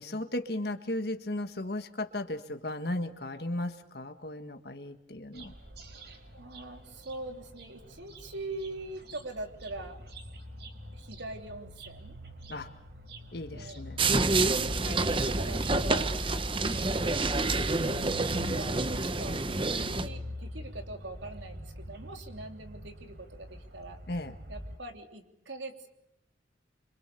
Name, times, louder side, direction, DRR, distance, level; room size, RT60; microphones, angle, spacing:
voice 1, 0.0-5.5 12.5-12.7 13.3-14.0 24.1-24.3, left 1 dB, 55° left, 7 dB, 1.7 m, -35 dB
sound 1, 5.3-24.8, equal, 60° right, 4.3 m, -44 dB
voice 2, 6.3-10.0 10.9-12.2 13.5-13.8 14.5-16.2 16.7-17.2 17.5-17.6 18.5-24.0 24.5-25.9, right 2 dB, 80° right, 5 dB, 3.3 m, -43 dB
sound 2, 14.0-20.1, right 3 dB, 25° right, 1.0 m, -28 dB
26.0 x 26.0 x 6.9 m, 0.79 s
head